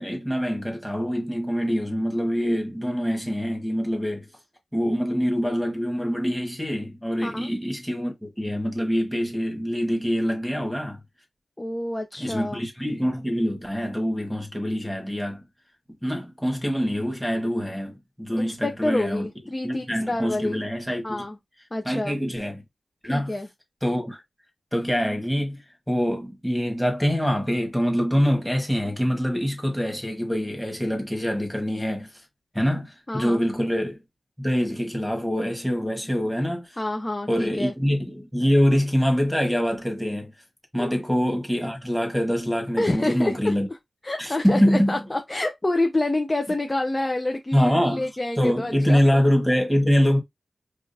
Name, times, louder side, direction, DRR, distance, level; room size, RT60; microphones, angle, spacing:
voice 1, 0.0-4.3 4.7-11.0 12.2-15.4 16.0-19.3 19.6-21.2 21.8-22.6 23.0-23.3 23.8-24.2 24.7-32.1 32.5-34.0 34.4-36.7 37.3-40.3 40.7-43.7 44.2-44.9 47.5-48.0 48.4-50.2, equal, ahead, 1.3 m, -24 dB
voice 2, 11.6-12.6 18.4-20.6 21.0-21.4 21.7-22.1 23.0-23.5 33.1-33.4 36.8-37.7 40.8-40.9 42.8-43.5 44.0-49.0, left 2 dB, 20° left, 0.5 m, -27 dB
4.9 x 2.4 x 2.6 m
wide cardioid pair, 120°, 0 cm